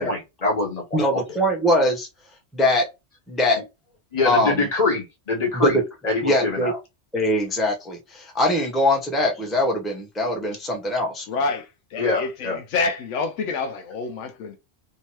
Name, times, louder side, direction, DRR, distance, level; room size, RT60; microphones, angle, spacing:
voice 1, 0.0-1.2 4.1-6.8 12.0-12.6, left 3 dB, 35° left, 1.0 m, -24 dB
voice 2, 0.9-2.1 2.5-2.8 3.3-3.6 4.2-4.7 5.5-5.8 6.2-6.7 7.1-11.3, left 1 dB, ahead, 0.6 m, -22 dB
voice 3, 11.3-14.6, left 4 dB, 85° left, 1.0 m, -28 dB
2.8 x 2.7 x 3.0 m
omnidirectional pair, 1.2 m